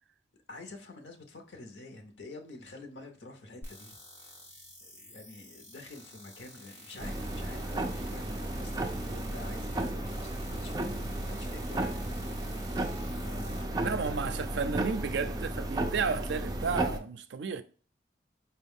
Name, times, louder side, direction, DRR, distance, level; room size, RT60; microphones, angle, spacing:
voice 1, 0.5-3.9 4.8-12.3 13.2-14.2, left 2 dB, 90° left, 0.7 m, -48 dB
sound 1, 3.6-13.6, left 1 dB, 15° left, 1.2 m, -51 dB
sound 2, 7.0-17.0, right 1 dB, 20° right, 0.4 m, -34 dB
voice 2, 13.8-17.6, right 5 dB, 85° right, 0.4 m, -32 dB
4.5 x 2.2 x 3.6 m
head